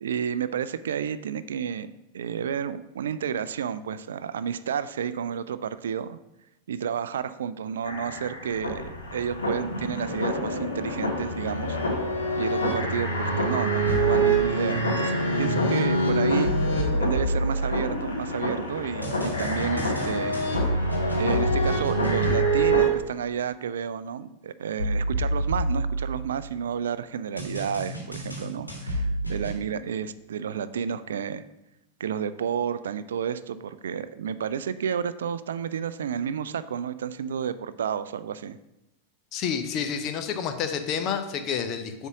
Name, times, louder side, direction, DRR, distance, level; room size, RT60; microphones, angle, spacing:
voice 1, 0.0-6.2 6.7-11.8 12.4-31.4 32.0-38.6, right 8 dB, 65° right, 14 dB, 0.3 m, -31 dB
sound 1, 7.8-22.9, right 1 dB, 70° left, 1.7 m, -26 dB
sound 2, 13.8-14.4 16.4-18.3 19.0-22.7 24.8-26.6 27.4-29.6, right 1 dB, 85° left, 1.9 m, -29 dB
voice 2, 39.3-42.1, left 7 dB, 35° left, 8 dB, 0.8 m, -29 dB
8.0 x 3.6 x 6.0 m, 0.89 s
figure-of-eight pair, 90°, 0 cm